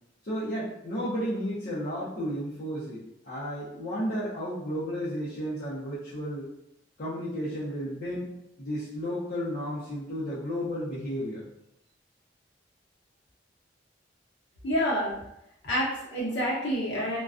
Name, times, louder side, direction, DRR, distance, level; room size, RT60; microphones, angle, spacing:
voice 1, 0.2-6.5 7.0-8.3 8.6-11.4, equal, 50° left, -11 dB, 0.6 m, -33 dB
voice 2, 14.6-15.1 15.6-17.2, equal, 90° left, -6 dB, 0.7 m, -28 dB
2.3 x 2.2 x 2.4 m, 0.80 s
head